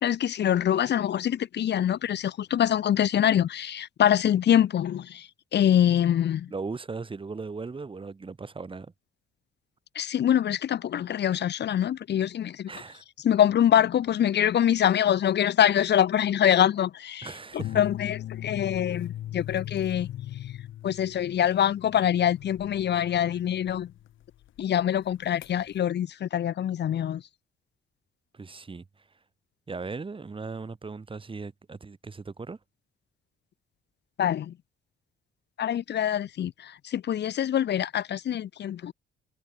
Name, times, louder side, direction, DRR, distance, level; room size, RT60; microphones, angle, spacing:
voice 1, 0.0-5.3 5.5-6.5 9.9-12.7 13.2-17.3 17.7-20.1 20.8-23.9 24.6-27.2 34.2-34.5 35.6-38.9, left 10 dB, 60° left, 1.2 m, -24 dB
voice 2, 6.5-8.9 12.7-13.0 17.2-17.8 28.3-29.0 29.7-32.6, right 4 dB, 25° right, 2.0 m, -38 dB
sound 1, 17.6-24.6 25.1-25.8, left 13 dB, 80° left, 6.8 m, -39 dB
cardioid pair, 90°, 20 cm